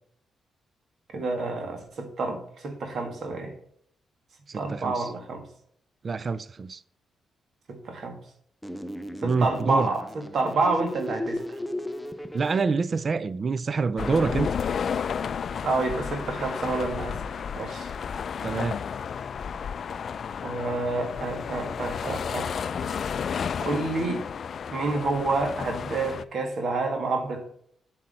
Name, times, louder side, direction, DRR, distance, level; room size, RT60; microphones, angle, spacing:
voice 1, 1.1-3.5 4.5-5.4 7.7-8.2 9.2-10.0 10.3-11.6 15.6-17.9 20.4-22.5 22.8-22.9 23.6-24.2 24.7-27.5, right 3 dB, 60° right, 1.9 m, -28 dB
voice 2, 4.5-5.1 6.0-6.8 9.2-9.9 12.3-14.5 18.4-18.8, right 4 dB, 40° right, 0.4 m, -26 dB
sound 1, 8.6-12.6, left 1 dB, 5° left, 0.6 m, -35 dB
sound 2, 14.0-26.2, left 7 dB, 55° left, 0.4 m, -32 dB
7.6 x 7.5 x 4.3 m
cardioid pair, 85°, 0 cm